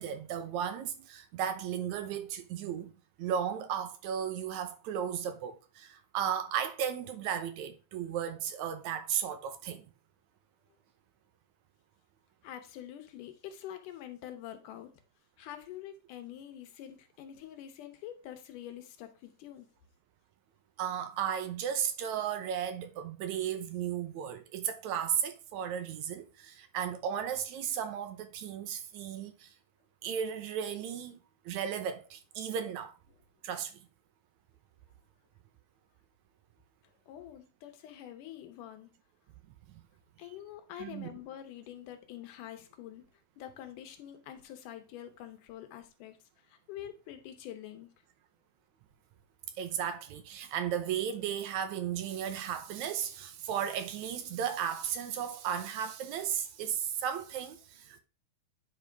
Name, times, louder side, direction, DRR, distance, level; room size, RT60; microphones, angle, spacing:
voice 1, 0.0-2.9 3.2-9.9 20.8-29.5 30.0-31.2 31.5-32.9 33.4-33.8 39.7-39.8 40.8-41.1 49.6-58.0, right 9 dB, 75° right, 2.1 m, -35 dB
voice 2, 12.4-14.9 15.4-19.7 37.1-38.9 40.2-43.0 43.4-46.2 46.5-47.9, left 11 dB, 85° left, 2.5 m, -46 dB
9.5 x 5.1 x 3.4 m
omnidirectional pair, 3.6 m